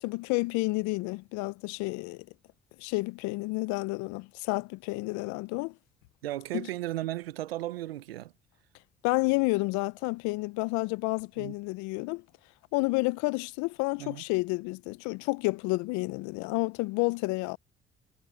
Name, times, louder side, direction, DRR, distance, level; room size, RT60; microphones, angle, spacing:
voice 1, 0.0-2.3 2.8-5.7 6.5-6.7 9.0-12.2 12.7-17.6, left 25 dB, 75° left, 0.9 m, -30 dB
voice 2, 6.2-8.3 11.4-11.5 14.0-14.2, right 15 dB, 90° right, 1.1 m, -35 dB
hypercardioid pair, 50°, 29 cm